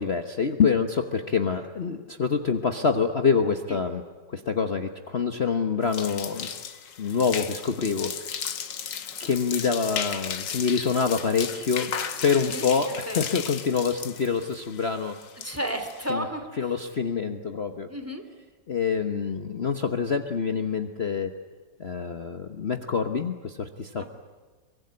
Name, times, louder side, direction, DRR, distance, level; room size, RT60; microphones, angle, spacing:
voice 1, 0.0-4.0 4.3-6.5 7.0-8.3 9.2-11.9 12.2-15.2 16.1-16.2 16.6-17.9 18.7-21.3 21.8-24.1, left 5 dB, 40° left, 6 dB, 1.2 m, -26 dB
sound 1, 5.8-16.1, left 7 dB, 75° left, 2.0 m, -35 dB
voice 2, 12.4-12.7 13.1-13.2 15.4-16.7 17.9-18.2 24.0-24.1, equal, 10° right, 6 dB, 2.5 m, -32 dB
23.5 x 23.5 x 9.7 m, 1.3 s
omnidirectional pair, 2.0 m